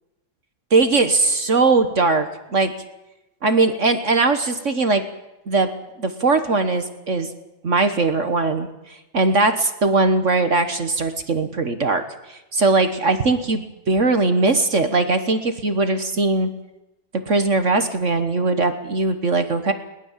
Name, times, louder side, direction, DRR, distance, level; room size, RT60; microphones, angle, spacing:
voice 1, 0.7-2.3 2.5-2.7 3.4-5.0 5.5-5.7 6.0-7.3 7.6-12.0 12.3-16.5 17.2-19.7, right 3 dB, 40° right, 9 dB, 1.5 m, -20 dB
21.0 x 19.5 x 7.4 m, 0.98 s
omnidirectional pair, 2.2 m